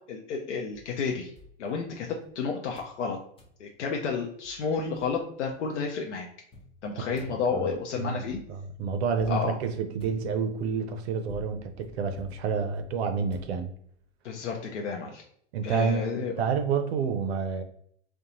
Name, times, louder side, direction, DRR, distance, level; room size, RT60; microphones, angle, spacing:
voice 1, 0.1-1.3 1.6-3.2 3.6-6.3 6.8-8.4 9.3-9.6 14.2-15.2 15.6-16.3, left 5 dB, 80° left, 1 dB, 0.6 m, -31 dB
sound 1, 0.7-2.3 2.7-3.0 3.4-3.6 4.1-4.2 4.4-5.5 6.5-14.1, left 2 dB, 15° left, 0.7 m, -51 dB
voice 2, 8.5-13.7 15.5-17.6, right 5 dB, 65° right, 7 dB, 0.6 m, -29 dB
2.4 x 2.2 x 2.8 m, 0.63 s
hypercardioid pair, 110°, 35 cm